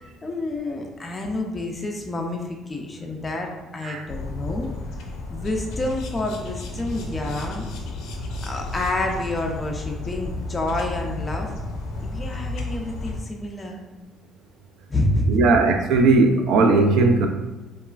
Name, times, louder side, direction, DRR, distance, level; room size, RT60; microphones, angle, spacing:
voice 1, 0.0-4.7 5.3-7.6 8.4-11.5 12.0-13.8 14.9-15.4, left 2 dB, 20° left, 1 dB, 0.3 m, -28 dB
sound 1, 4.1-13.2, left 2 dB, 85° left, 0.4 m, -32 dB
voice 2, 15.3-17.3, right 3 dB, 70° right, 4 dB, 0.3 m, -18 dB
2.9 x 2.3 x 2.3 m, 1.2 s
cardioid pair, 125°, 0 cm